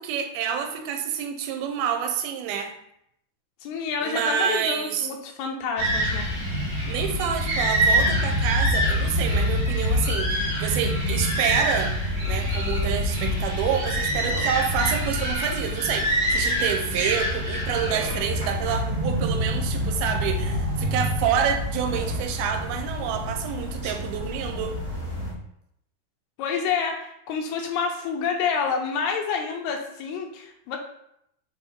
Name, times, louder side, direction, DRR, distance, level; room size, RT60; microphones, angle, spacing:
voice 1, 0.0-2.7 4.0-5.1 6.8-11.9 12.2-24.8, right 8 dB, 85° right, 5 dB, 2.6 m, -28 dB
voice 2, 3.6-6.3 26.4-30.8, left 6 dB, 80° left, 2 dB, 3.0 m, -28 dB
sound 1, 5.8-25.3, equal, 50° right, 3.1 m, -26 dB
7.3 x 4.0 x 4.3 m, 0.77 s
omnidirectional pair, 4.5 m